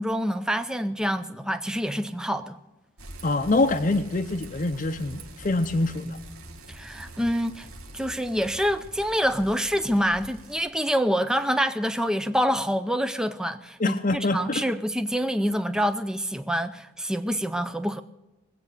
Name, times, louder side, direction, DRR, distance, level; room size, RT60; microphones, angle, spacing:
voice 1, 0.0-2.6 6.7-7.7 7.9-18.0, equal, 5° right, 0.4 m, -26 dB
Bicycle, 3.0-10.7, right 1 dB, 90° right, 1.8 m, -45 dB
voice 2, 3.2-6.2 13.8-14.6, left 2 dB, 35° left, 0.6 m, -25 dB
20.5 x 8.5 x 6.6 m
head